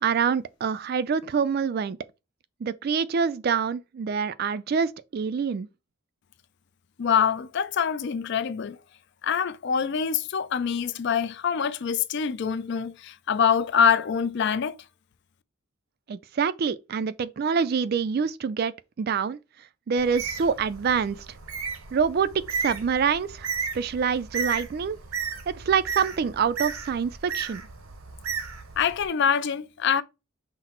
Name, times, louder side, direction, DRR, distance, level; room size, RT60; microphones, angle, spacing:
voice 1, 0.0-2.0 2.6-5.7 16.1-19.4 19.9-21.2 21.9-22.3 22.6-23.5 23.7-25.0 25.5-27.6, right 6 dB, 45° right, 0.3 m, -26 dB
voice 2, 7.0-8.8 9.2-14.7 28.8-30.0, left 7 dB, 55° left, 0.4 m, -25 dB
Bird, 20.0-29.1, right 5 dB, 75° right, 0.7 m, -34 dB
5.8 x 2.0 x 4.3 m
head